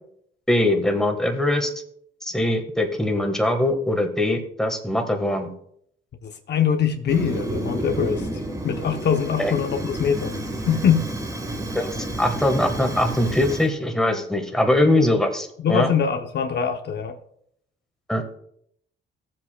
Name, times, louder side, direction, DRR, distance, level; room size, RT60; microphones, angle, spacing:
voice 1, 0.5-1.7 2.2-5.5 9.4-9.5 11.7-15.9 18.1-18.2, left 1 dB, 5° left, 4 dB, 1.4 m, -22 dB
voice 2, 6.2-11.1 15.6-17.2, left 7 dB, 60° left, 6 dB, 0.8 m, -23 dB
Fire, 7.1-13.7, right 1 dB, 15° right, 1.1 m, -30 dB
15.5 x 7.5 x 2.2 m, 0.70 s
cardioid pair, 90°, 20 cm